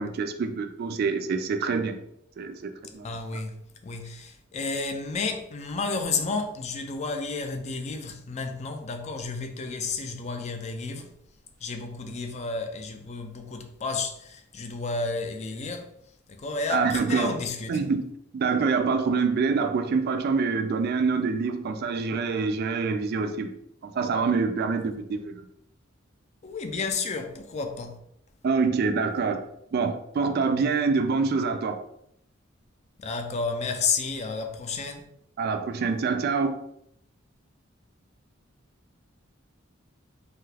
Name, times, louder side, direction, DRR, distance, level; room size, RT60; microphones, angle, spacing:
voice 1, 0.0-1.9 2.4-3.1 16.7-17.3 17.7-18.1 18.3-23.5 23.8-25.4 28.4-29.4 29.7-31.8 35.4-36.6, right 4 dB, 50° right, 0.3 m, -26 dB
voice 2, 3.0-3.6 3.8-11.1 11.6-15.9 16.3-17.8 26.4-28.0 33.0-35.1, left 4 dB, 35° left, 0.4 m, -31 dB
2.8 x 2.3 x 3.2 m
head